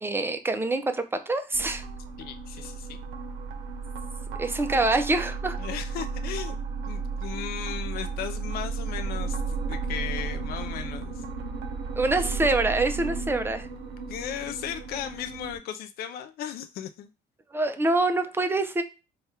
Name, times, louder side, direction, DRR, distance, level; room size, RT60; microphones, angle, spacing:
voice 1, 0.0-1.8 4.4-5.6 12.0-13.7 17.5-18.8, right 2 dB, 15° right, 0.5 m, -25 dB
sound 1, 1.5-15.6, right 4 dB, 80° right, 0.7 m, -34 dB
voice 2, 2.2-3.0 5.6-6.6 6.8-11.2 14.1-17.1, left 10 dB, 65° left, 0.4 m, -36 dB
3.4 x 2.3 x 4.2 m
cardioid pair, 110°, 17 cm